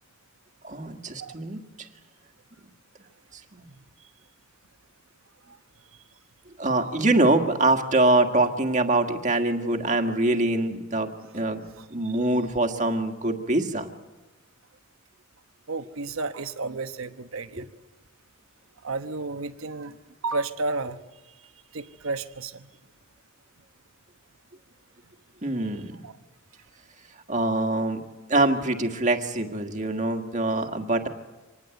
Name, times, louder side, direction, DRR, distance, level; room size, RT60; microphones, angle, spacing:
voice 1, 0.6-1.6 3.5-3.7 6.6-11.6 11.9-13.9 17.6-17.7 25.4-26.0 27.3-28.0 28.3-31.1, right 2 dB, 35° right, 5 dB, 1.7 m, -24 dB
voice 2, 11.8-12.1 15.7-17.7 18.8-20.0 20.2-21.0 21.7-22.7 26.0-26.2, right 3 dB, 75° right, 9 dB, 1.1 m, -32 dB
25.5 x 19.5 x 8.0 m, 1.2 s
head